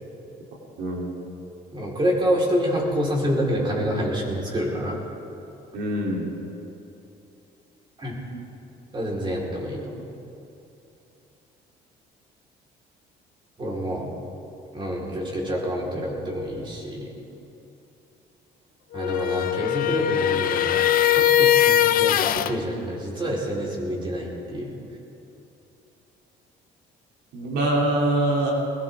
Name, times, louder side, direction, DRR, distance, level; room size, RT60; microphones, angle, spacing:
voice 1, 0.8-1.1 5.7-6.3 27.3-28.5, right 1 dB, 80° right, -2 dB, 3.4 m, -24 dB
voice 2, 1.7-5.0 8.0-8.1 8.9-10.0 13.6-14.1 14.7-17.1 18.9-24.8, equal, 30° right, -3 dB, 4.5 m, -27 dB
sound 1, 18.9-22.5, left 11 dB, 55° left, 0.6 m, -20 dB
21.5 x 18.0 x 3.7 m, 2.8 s
cardioid pair, 110°, 17 cm